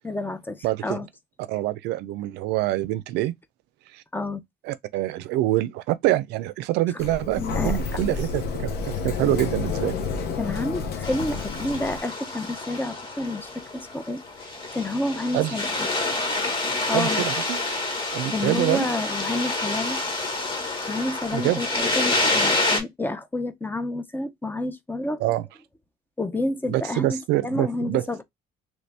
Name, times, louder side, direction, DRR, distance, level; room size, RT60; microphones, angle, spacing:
voice 1, 0.0-1.1 4.1-4.4 6.9-7.0 7.4-8.0 10.4-14.2 14.7-15.9 16.9-17.3 18.3-20.0 20.9-25.2 26.2-28.2, left 2 dB, 10° left, 0.5 m, -29 dB
voice 2, 0.6-1.0 1.5-3.3 3.9-4.0 4.6-10.0 15.3-15.5 16.9-17.6 18.1-18.9 21.3-21.6 25.2-25.4 26.7-28.1, right 15 dB, 90° right, 0.4 m, -25 dB
Sliding door, 7.0-12.0, left 5 dB, 70° left, 0.9 m, -30 dB
sound 1, 11.0-22.8, left 2 dB, 30° left, 1.3 m, -28 dB
3.1 x 2.6 x 3.3 m
cardioid pair, 110°, 17 cm